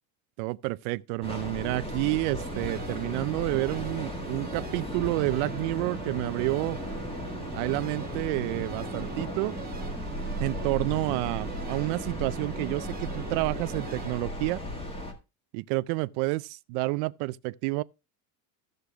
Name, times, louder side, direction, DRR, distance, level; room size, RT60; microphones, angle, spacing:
voice 1, 0.4-6.8 7.5-9.5 10.4-14.6 15.5-17.8, right 23 dB, 65° right, 0.5 m, -29 dB
Train, 1.2-15.1, equal, 15° left, 1.8 m, -35 dB
sound 1, 2.5-14.2, right 7 dB, 20° right, 0.9 m, -43 dB
14.5 x 6.6 x 3.4 m
cardioid pair, 155°, 43 cm